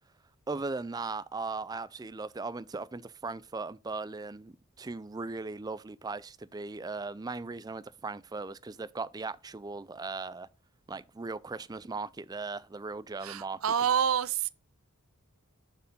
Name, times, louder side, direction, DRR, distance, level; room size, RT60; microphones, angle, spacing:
voice 1, 0.5-10.5 10.9-13.9, right 3 dB, 15° right, 0.4 m, -38 dB
voice 2, 13.2-14.5, right 8 dB, 70° right, 0.5 m, -27 dB
7.0 x 4.7 x 5.3 m
head